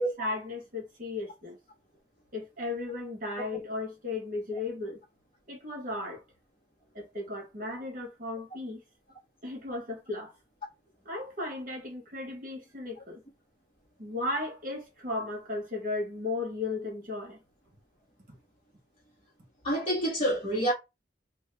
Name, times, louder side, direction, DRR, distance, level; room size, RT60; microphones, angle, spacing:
voice 1, 0.0-1.6 2.3-5.0 5.5-6.2 6.9-8.8 9.4-10.3 11.0-13.2 14.0-17.4 18.3-18.4, left 2 dB, 50° right, 1.3 m, -35 dB
voice 2, 19.6-20.7, right 1 dB, 30° left, 1.1 m, -27 dB
3.0 x 2.4 x 3.3 m
head